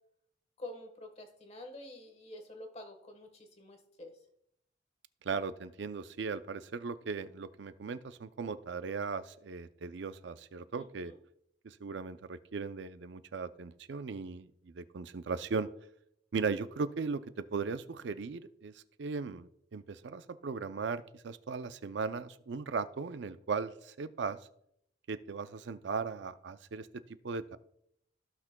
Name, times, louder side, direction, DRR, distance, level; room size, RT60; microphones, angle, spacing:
voice 1, 0.6-4.1 10.7-11.2, left 1 dB, 35° left, 4 dB, 1.3 m, -48 dB
voice 2, 5.2-11.1 11.6-15.7 16.3-24.4 25.1-27.6, right 5 dB, 65° right, 13 dB, 0.4 m, -38 dB
15.0 x 5.9 x 2.2 m, 0.73 s
head